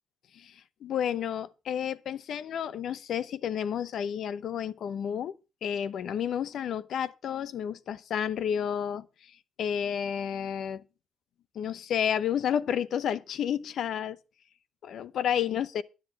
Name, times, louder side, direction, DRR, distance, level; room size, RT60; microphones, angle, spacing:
voice 1, 0.8-9.1 9.6-10.8 11.5-14.2 14.8-15.8, left 9 dB, 70° left, 0.8 m, -31 dB
10.5 x 10.0 x 5.7 m
cardioid pair, 90°, 0 cm